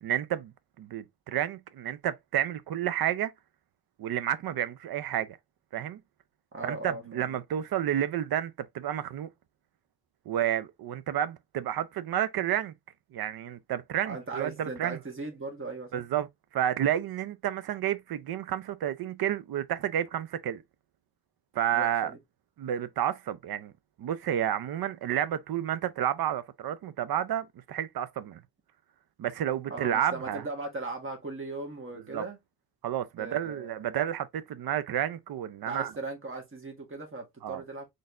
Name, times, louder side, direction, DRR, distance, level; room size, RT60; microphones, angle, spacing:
voice 1, 0.0-3.3 4.0-5.4 5.7-6.0 6.6-9.3 10.3-12.7 13.1-15.0 15.9-16.3 16.5-20.6 21.5-22.1 22.6-23.7 24.0-28.4 29.2-30.4 32.1-32.2 32.8-35.9 37.4-37.6, right 11 dB, 65° right, 0.6 m, -30 dB
voice 2, 6.5-7.3 14.0-16.0 21.7-22.2 29.7-32.4 33.2-33.7 35.7-37.9, right 3 dB, 30° right, 1.5 m, -38 dB
4.0 x 3.3 x 2.5 m
cardioid pair, 100°, 40 cm